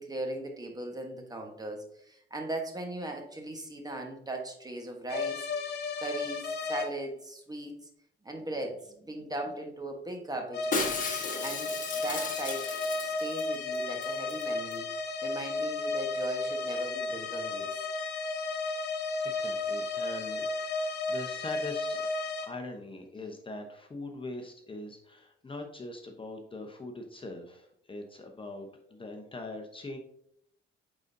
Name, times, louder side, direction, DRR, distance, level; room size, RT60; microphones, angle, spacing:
voice 1, 0.0-5.5 6.0-7.9 8.2-11.0 11.4-12.7 13.0-17.7, right 1 dB, 20° right, 3 dB, 1.3 m, -38 dB
sound 1, 5.1-6.9 10.5-22.5, left 3 dB, 55° left, 0.9 m, -33 dB
Shatter, 10.7-13.5 13.7-13.8 14.0-14.4 14.7-14.8, left 3 dB, 40° left, 1.4 m, -34 dB
voice 2, 17.9-18.5 19.2-22.0 22.4-30.0, left 2 dB, 25° left, 4 dB, 0.9 m, -42 dB
8.9 x 3.9 x 2.7 m, 0.69 s
cardioid pair, 90°, 20 cm